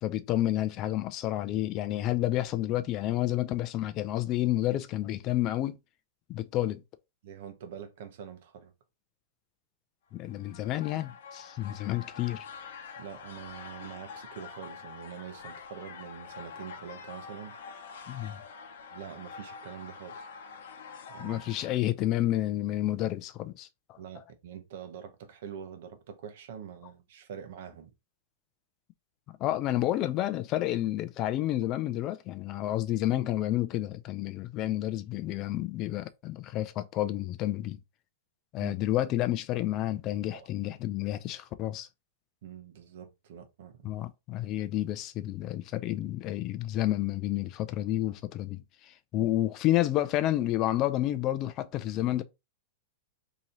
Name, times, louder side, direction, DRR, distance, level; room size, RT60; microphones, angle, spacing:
voice 1, 0.0-5.8 6.3-6.8 10.1-12.5 18.1-18.4 21.2-24.0 29.4-37.8 38.5-41.9 43.8-52.2, left 14 dB, 40° left, 0.4 m, -30 dB
voice 2, 7.2-8.7 13.0-17.6 18.9-20.3 21.1-21.4 24.0-27.9 38.6-38.8 40.3-40.5 42.4-44.0 49.2-49.3, right 8 dB, 65° right, 0.9 m, -45 dB
sound 1, 10.2-21.8, left 5 dB, 70° left, 0.9 m, -46 dB
3.0 x 2.8 x 3.9 m
hypercardioid pair, 130°, 0 cm